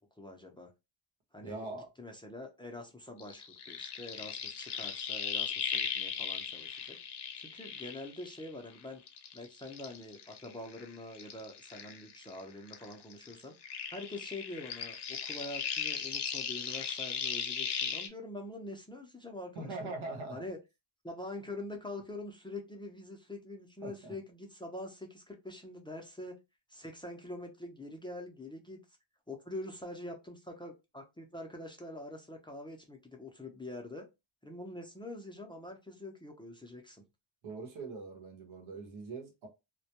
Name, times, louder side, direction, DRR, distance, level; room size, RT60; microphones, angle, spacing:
voice 1, 0.2-0.7 1.3-7.0 7.4-9.0 9.3-13.5 13.9-19.9 20.3-20.6 21.0-26.4 26.7-28.8 29.3-34.1 34.4-37.0, left 1 dB, 10° left, 0.4 m, -45 dB
voice 2, 1.4-1.9 19.5-20.4 23.8-24.1 37.4-39.5, right 3 dB, 90° right, 0.9 m, -42 dB
sound 1, 3.2-8.7 9.1-12.4 12.7-18.1, left 7 dB, 60° left, 0.6 m, -38 dB
2.2 x 2.1 x 2.8 m
wide cardioid pair, 105°, 46 cm